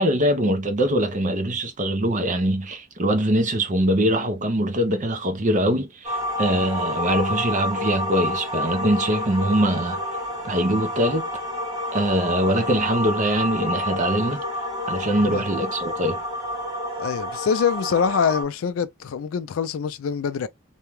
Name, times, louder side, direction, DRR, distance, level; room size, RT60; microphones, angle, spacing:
voice 1, 0.0-10.0 10.4-11.3 11.9-14.4 14.9-16.2, right 1 dB, 40° right, 0.6 m, -23 dB
sound 1, 6.0-18.4, left 1 dB, 20° right, 1.1 m, -29 dB
voice 2, 17.0-20.5, left 7 dB, 75° left, 0.4 m, -24 dB
2.7 x 2.2 x 3.1 m
head